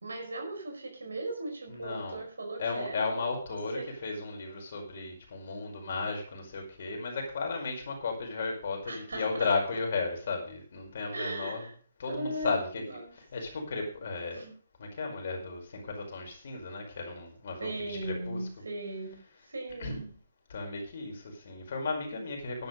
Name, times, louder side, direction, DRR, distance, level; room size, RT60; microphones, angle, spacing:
voice 1, 0.0-3.4 3.7-3.9 8.8-9.5 11.1-11.7 12.1-13.1 14.3-14.5 17.6-19.2 19.5-20.1, right 2 dB, 70° right, 3 dB, 4.9 m, -38 dB
voice 2, 1.7-2.2 2.6-11.7 12.0-12.8 13.1-14.4 14.8-18.4 19.8-20.0 20.5-22.7, left 4 dB, 55° left, 1 dB, 5.1 m, -34 dB
11.5 x 9.8 x 5.3 m, 0.43 s
figure-of-eight pair, 130°, 0 cm